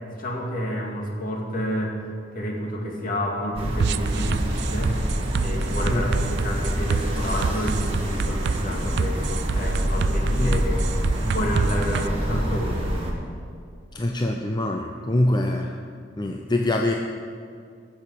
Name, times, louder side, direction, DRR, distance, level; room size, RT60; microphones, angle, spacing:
voice 1, 0.0-1.9 2.3-4.9 5.4-10.8 11.2-13.0, equal, 50° left, -1 dB, 2.2 m, -29 dB
sound 1, 3.5-13.1, equal, 35° right, 1.8 m, -26 dB
sound 2, 3.8-12.1, right 6 dB, 65° right, 0.3 m, -29 dB
voice 2, 5.9-6.3 10.4-10.7 13.9-15.8 16.2-16.9, left 1 dB, 25° left, 3 dB, 0.6 m, -24 dB
14.0 x 7.1 x 6.6 m, 2.2 s
head